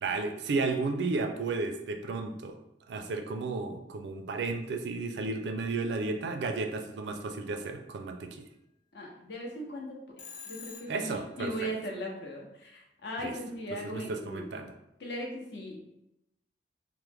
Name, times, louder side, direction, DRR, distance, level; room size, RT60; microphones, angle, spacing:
voice 1, 0.0-2.6 2.9-8.4 10.9-11.7 13.2-13.3 13.7-14.7, right 3 dB, 70° right, 6 dB, 0.4 m, -33 dB
voice 2, 8.9-10.0 10.5-14.6 15.0-15.8, equal, 70° left, 0 dB, 0.7 m, -38 dB
Telephone, 10.2-11.3, left 6 dB, 45° left, 0.4 m, -46 dB
3.1 x 2.0 x 3.3 m, 0.87 s
head